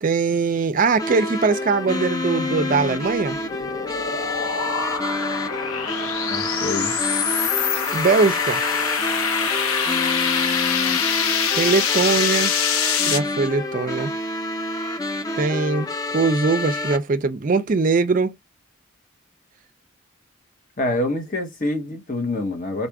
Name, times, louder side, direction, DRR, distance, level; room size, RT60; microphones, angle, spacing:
voice 1, 0.0-3.4 7.9-8.6 11.5-12.5 13.1-14.1 15.4-18.4, right 4 dB, 40° right, 0.4 m, -21 dB
sound 1, 1.0-17.0, left 2 dB, 15° left, 0.5 m, -28 dB
sound 2, 3.0-13.2, left 7 dB, 85° left, 0.7 m, -24 dB
voice 2, 6.2-6.9 20.8-22.9, left 2 dB, 40° left, 0.9 m, -26 dB
4.1 x 2.4 x 4.6 m
head